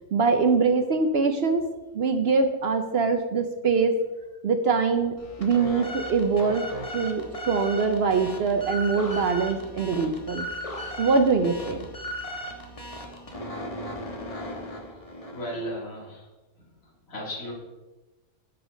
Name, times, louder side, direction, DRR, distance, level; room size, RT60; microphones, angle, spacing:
voice 1, 0.1-1.7 1.9-3.9 4.4-6.7 6.9-10.5 11.0-11.8, right 4 dB, 55° right, 7 dB, 0.7 m, -23 dB
sound 1, 5.2-15.7, equal, 25° left, 1.1 m, -37 dB
voice 2, 15.3-16.3 16.6-17.5, equal, 60° left, -2 dB, 2.4 m, -36 dB
7.3 x 7.0 x 5.1 m, 1.1 s
omnidirectional pair, 1.6 m